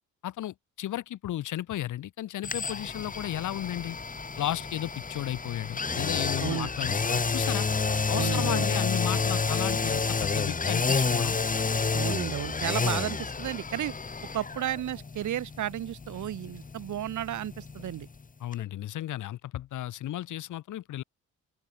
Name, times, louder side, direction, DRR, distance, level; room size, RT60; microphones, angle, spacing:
voice 1, 0.2-4.0 4.4-7.7 8.1-11.4 18.4-21.0, left 13 dB, 80° left, 6.5 m, -34 dB
sound 1, 2.4-18.2 18.5-18.6, left 4 dB, 25° left, 2.6 m, -30 dB
voice 2, 8.1-8.7 11.9-13.9 14.3-18.1, right 12 dB, 75° right, 4.0 m, -33 dB
open air
cardioid pair, 90°, 30 cm